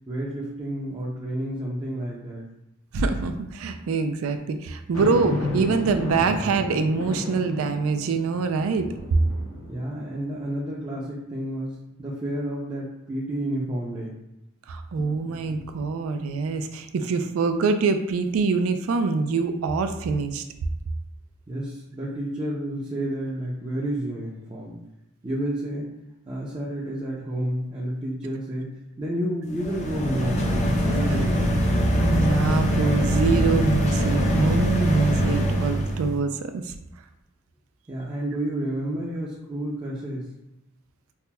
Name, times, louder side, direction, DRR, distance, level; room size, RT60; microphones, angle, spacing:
voice 1, 0.1-2.4 9.7-14.2 21.5-24.8 25.2-25.9 26.3-31.6 37.9-40.3, right 1 dB, 20° right, -5 dB, 0.5 m, -30 dB
voice 2, 2.9-8.9 14.7-20.4 32.0-36.7, right 4 dB, 80° right, 8 dB, 0.4 m, -25 dB
sound 1, 4.9-10.5 11.0-11.1 15.0-16.0, left 1 dB, 80° left, 0.7 m, -33 dB
sound 2, 29.5-36.1, equal, 35° left, 0.4 m, -23 dB
5.6 x 2.1 x 2.2 m, 0.89 s
head